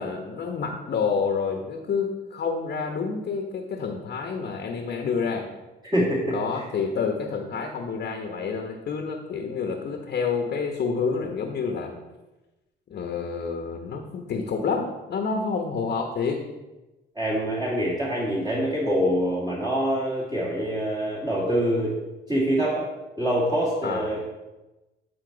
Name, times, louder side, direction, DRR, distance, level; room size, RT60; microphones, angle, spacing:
voice 1, 0.0-5.5 6.3-11.9 12.9-16.4 23.8-24.1, left 5 dB, 55° left, 2 dB, 1.1 m, -28 dB
voice 2, 5.8-6.6 17.2-21.9 22.3-22.9 23.2-24.2, equal, 20° right, -8 dB, 2.0 m, -25 dB
9.6 x 4.2 x 3.9 m, 1.1 s
cardioid pair, 90°, 20 cm